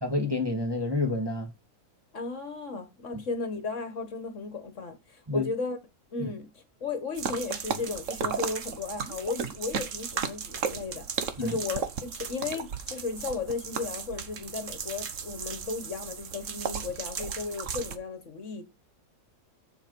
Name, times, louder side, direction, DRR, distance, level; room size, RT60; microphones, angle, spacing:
voice 1, 0.0-1.5 3.1-3.2 5.3-5.5 6.2-6.3 11.4-11.6, left 2 dB, 15° right, 1.6 m, -29 dB
voice 2, 2.1-5.8 6.1-18.6, left 4 dB, 55° left, 1.6 m, -35 dB
sound 1, 7.1-18.0, right 6 dB, 55° right, 1.3 m, -35 dB
7.2 x 7.1 x 5.2 m
omnidirectional pair, 1.6 m